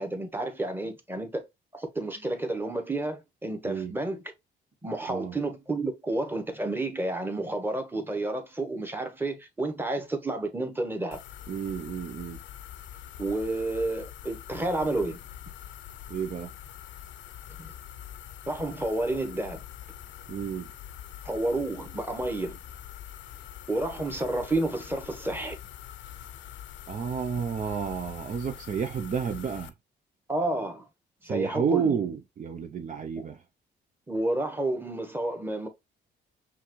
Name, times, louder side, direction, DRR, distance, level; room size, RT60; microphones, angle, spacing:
voice 1, 0.0-1.4 1.7-4.2 4.8-11.2 13.2-15.2 17.6-17.7 18.5-19.6 21.2-22.6 23.7-25.6 30.3-30.9 31.2-32.0 34.1-35.7, right 2 dB, 10° right, 1.2 m, -30 dB
sound 1, 11.1-29.7, left 11 dB, 70° left, 0.6 m, -44 dB
voice 2, 11.5-12.4 16.1-16.5 20.3-20.7 26.9-29.7 31.2-33.4, right 7 dB, 40° right, 0.5 m, -31 dB
5.6 x 2.5 x 3.0 m
cardioid pair, 90°, 20 cm